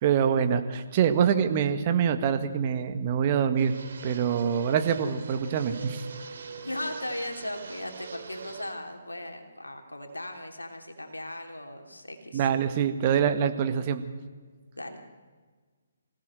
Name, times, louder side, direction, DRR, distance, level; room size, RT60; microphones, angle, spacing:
voice 1, 0.0-3.7 4.0-6.0 12.3-14.0, right 8 dB, 35° right, 8 dB, 1.9 m, -25 dB
Fixed-wing aircraft airplane, 3.6-8.7, right 5 dB, 55° right, 2.8 m, -43 dB
voice 2, 6.6-12.5 14.8-15.0, left 1 dB, 85° left, 5 dB, 3.2 m, -37 dB
25.5 x 17.0 x 7.8 m, 1.5 s
figure-of-eight pair, 135°, 0 cm